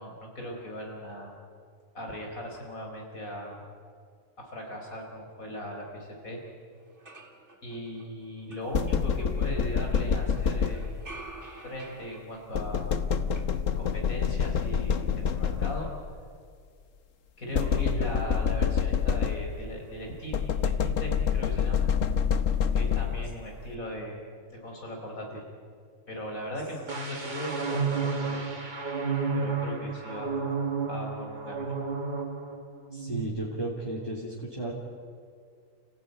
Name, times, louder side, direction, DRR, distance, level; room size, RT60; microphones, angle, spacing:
voice 1, 0.0-1.3 1.9-3.7 4.4-6.4 7.6-10.9 11.6-12.9 13.8-15.9 17.4-21.9 22.7-24.2 24.5-25.4 26.1-28.5 29.3-30.4 30.9-31.8, equal, 90° left, 0 dB, 5.2 m, -38 dB
sound 1, 6.4-6.5 6.8-9.9 10.3-14.2 14.5-15.2, right 2 dB, 55° right, 2.8 m, -50 dB
sound 2, 8.7-11.2 12.5-16.1 17.5-19.7 20.3-23.4, left 7 dB, 70° left, 1.4 m, -27 dB
sound 3, 26.9-32.6 32.9-33.2, right 4 dB, 35° right, 2.1 m, -31 dB
voice 2, 32.9-34.7, right 1 dB, 15° left, -5 dB, 3.0 m, -34 dB
30.0 x 15.5 x 9.5 m, 2.1 s
omnidirectional pair, 1.4 m